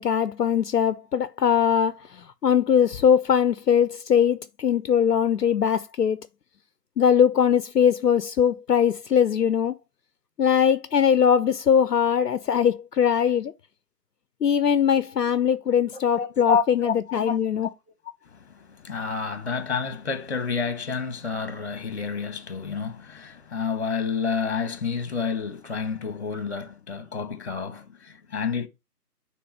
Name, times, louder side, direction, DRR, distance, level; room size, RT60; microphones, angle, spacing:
voice 1, 0.0-6.2 7.0-9.8 10.4-13.5 14.4-17.7, left 8 dB, 75° left, 0.6 m, -21 dB
voice 2, 15.9-17.4 17.6-17.7 18.2-28.7, left 5 dB, 40° left, 1.1 m, -29 dB
9.4 x 3.4 x 3.3 m
figure-of-eight pair, 155°, 49 cm